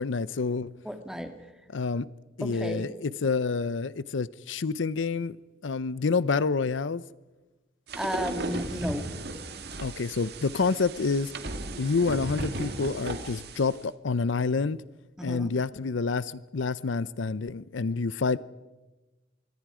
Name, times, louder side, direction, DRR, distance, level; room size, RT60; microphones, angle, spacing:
voice 1, 0.0-0.7 1.7-2.1 2.4-5.4 5.6-7.0 9.8-11.3 11.8-14.8 15.2-18.4, left 4 dB, 75° left, 0.6 m, -28 dB
voice 2, 0.8-1.3 2.4-2.9 8.0-9.1 15.2-15.5, equal, 5° right, 1.8 m, -33 dB
sound 1, 7.9-13.8, right 2 dB, 55° right, 1.9 m, -36 dB
25.5 x 23.5 x 5.0 m
head